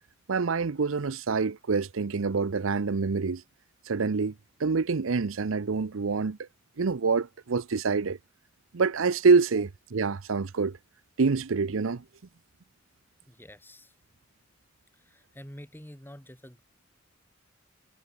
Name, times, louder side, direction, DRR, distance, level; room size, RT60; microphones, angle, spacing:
voice 1, 0.3-3.4 3.9-4.3 4.6-6.5 6.8-8.2 8.7-10.8 11.2-12.0, right 4 dB, 80° right, 0.7 m, -26 dB
voice 2, 13.2-13.9 14.9-16.6, equal, 10° left, 6.1 m, -48 dB
head